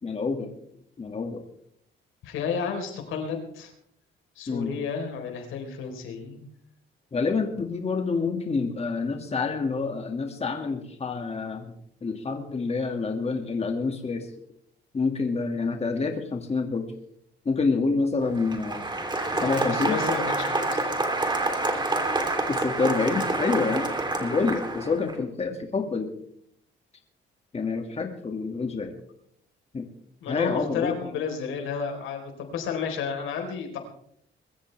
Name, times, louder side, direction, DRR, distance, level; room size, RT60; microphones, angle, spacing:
voice 1, 0.0-0.5 1.0-1.4 4.5-4.7 7.1-11.7 12.0-14.3 14.9-16.9 17.5-18.9 19.4-20.0 22.5-23.9 24.2-26.1 27.5-28.9 29.7-29.9 30.3-31.0, left 4 dB, 30° left, 4 dB, 2.1 m, -27 dB
voice 2, 2.2-3.7 4.4-6.4 19.1-21.0 30.2-33.8, left 6 dB, 85° left, 4 dB, 4.1 m, -32 dB
Applause, 18.2-25.1, right 2 dB, 20° right, 3.2 m, -27 dB
22.5 x 14.5 x 3.4 m, 0.69 s
cardioid pair, 90°, 20 cm